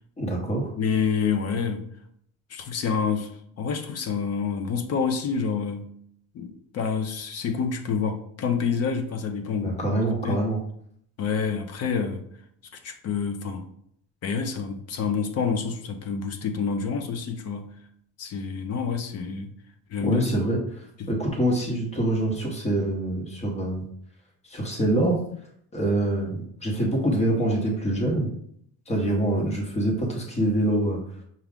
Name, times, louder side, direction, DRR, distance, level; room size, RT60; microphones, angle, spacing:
voice 1, 0.2-0.7 9.6-10.6 20.0-20.6 21.1-23.8 24.4-25.2 25.7-28.3 28.9-31.0, right 1 dB, 20° left, 0 dB, 0.9 m, -25 dB
voice 2, 0.8-1.8 2.5-3.3 3.6-5.8 6.3-10.4 11.2-12.2 12.7-13.7 14.2-17.7 18.2-19.5 19.9-20.3 21.0-21.1, left 6 dB, 45° left, 7 dB, 0.6 m, -28 dB
5.9 x 2.3 x 3.6 m, 0.68 s
cardioid pair, 165°, 36 cm